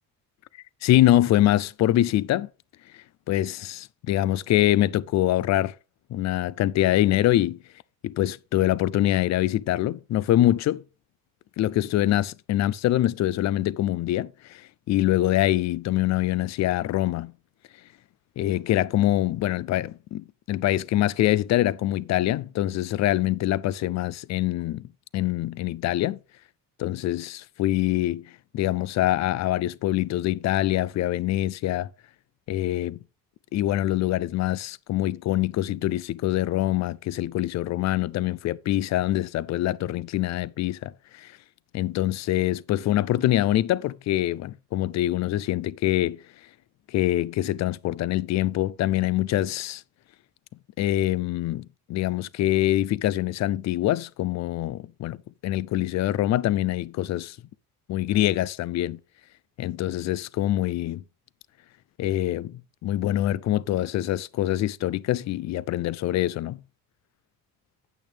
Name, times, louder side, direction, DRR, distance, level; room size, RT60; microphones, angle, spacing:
voice 1, 0.8-2.5 3.3-5.7 6.1-7.6 8.0-10.8 11.6-17.3 18.4-26.2 26.8-28.3 28.5-31.9 32.5-33.0 33.5-41.3 41.7-46.2 46.9-49.8 50.8-55.2 55.4-57.4 57.9-59.0 59.6-61.0 62.0-66.6, left 14 dB, 50° left, 0.4 m, -24 dB
9.0 x 8.7 x 3.3 m
cardioid pair, 145°, 36 cm